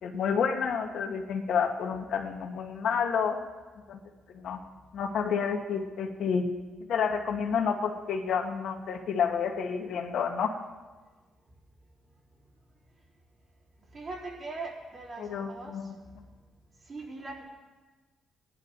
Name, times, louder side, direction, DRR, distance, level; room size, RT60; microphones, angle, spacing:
voice 1, 0.0-3.4 3.9-4.0 4.3-4.6 4.9-6.4 6.9-10.6 15.2-16.3, left 6 dB, 70° left, 3 dB, 1.6 m, -29 dB
voice 2, 13.9-15.7 16.9-17.4, right 3 dB, 45° right, -6 dB, 4.1 m, -40 dB
19.0 x 11.0 x 4.0 m, 1.3 s
cardioid pair, 90°, 0 cm